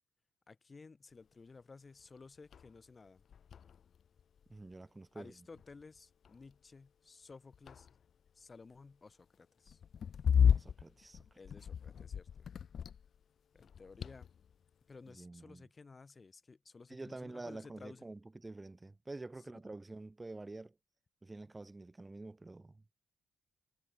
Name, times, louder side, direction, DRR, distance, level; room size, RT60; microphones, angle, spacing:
voice 1, 0.5-3.2 5.1-7.9 8.3-9.8 11.3-12.6 13.5-14.3 14.9-18.1 19.5-19.6, left 4 dB, 25° left, 2.4 m, -55 dB
sound 1, 2.0-2.1 2.5-2.8 3.1-4.7 5.6-6.0 6.2-6.5 7.3-8.3 9.7-13.2 13.5-14.5, left 7 dB, 50° left, 0.3 m, -34 dB
voice 2, 4.5-5.3 10.5-11.2 15.1-15.6 16.9-20.7 21.2-22.8, right 2 dB, 15° right, 1.3 m, -48 dB
cardioid pair, 130°, 0 cm